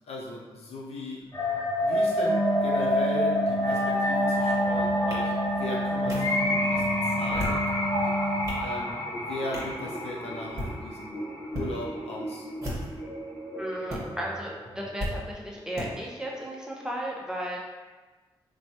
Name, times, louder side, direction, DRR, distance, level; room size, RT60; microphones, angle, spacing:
voice 1, 0.1-1.2 1.8-8.1 8.6-11.1 11.5-12.5, left 1 dB, 65° left, -4 dB, 0.6 m, -38 dB
sound 1, 1.3-15.3, left 1 dB, 25° left, 0.7 m, -30 dB
Wind instrument woodwind instrument, 2.2-8.7, equal, 70° right, 0.6 m, -29 dB
sound 2, 5.1-5.2 6.1-6.2 7.2-7.7 8.2-8.7 9.5-9.8 10.4-10.7 11.5-11.7 12.5-13.0 13.9-14.0 15.0-15.1 15.8-15.9, equal, 30° right, 1.2 m, -34 dB
voice 2, 13.6-17.6, equal, 5° right, -3 dB, 0.7 m, -34 dB
2.9 x 2.2 x 2.8 m, 1.3 s
supercardioid pair, 40°, 11 cm